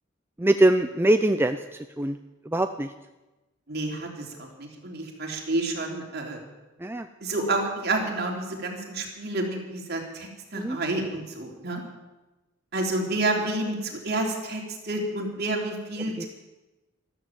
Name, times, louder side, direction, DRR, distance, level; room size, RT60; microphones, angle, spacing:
voice 1, 0.4-1.6 2.0-2.2 2.5-2.9 6.8-7.1 10.5-10.8 16.2-16.3, right 1 dB, 10° right, 8 dB, 0.5 m, -22 dB
voice 2, 3.7-6.4 7.2-11.8 12.7-16.3, right 2 dB, 55° right, 1 dB, 3.2 m, -29 dB
14.0 x 13.5 x 7.4 m, 1.1 s
head